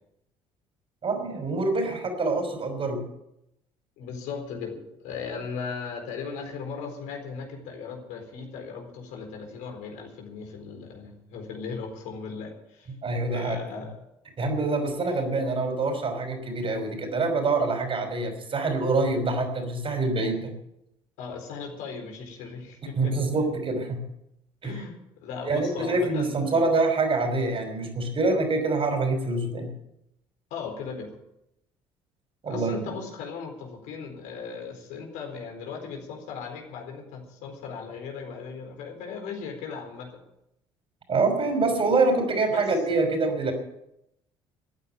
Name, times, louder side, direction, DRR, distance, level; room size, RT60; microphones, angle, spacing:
voice 1, 1.0-3.0 13.0-13.8 14.4-20.5 22.9-24.0 24.6-24.8 25.5-29.7 32.4-32.8 41.1-43.5, right 3 dB, 45° right, 5 dB, 5.5 m, -25 dB
voice 2, 4.0-12.9 13.3-14.0 21.2-23.1 24.6-26.7 30.5-31.1 32.4-40.2 42.5-43.1, left 5 dB, 75° left, 3 dB, 4.3 m, -37 dB
14.5 x 9.5 x 8.9 m, 0.82 s
hypercardioid pair, 60°, 13 cm